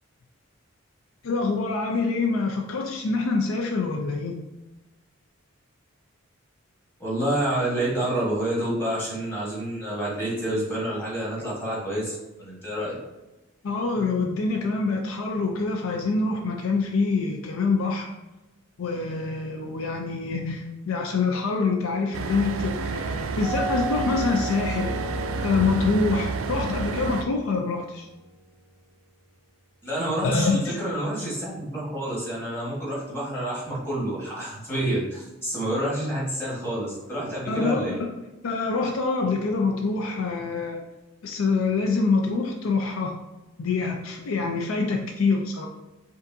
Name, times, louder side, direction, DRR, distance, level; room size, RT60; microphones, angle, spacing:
voice 1, 1.2-4.4 13.6-18.1 18.8-24.9 25.4-28.1 30.2-30.8 37.5-38.1 38.4-40.8 41.2-43.2 43.6-45.7, left 4 dB, 80° left, 3 dB, 0.4 m, -25 dB
voice 2, 7.0-13.0 29.8-38.0, right 1 dB, 10° left, -6 dB, 1.3 m, -28 dB
sound 1, 22.1-27.2, right 4 dB, 85° right, 0.3 m, -30 dB
sound 2, 23.4-28.5, right 2 dB, 25° right, 0.6 m, -35 dB
5.2 x 2.6 x 2.6 m, 1.0 s
head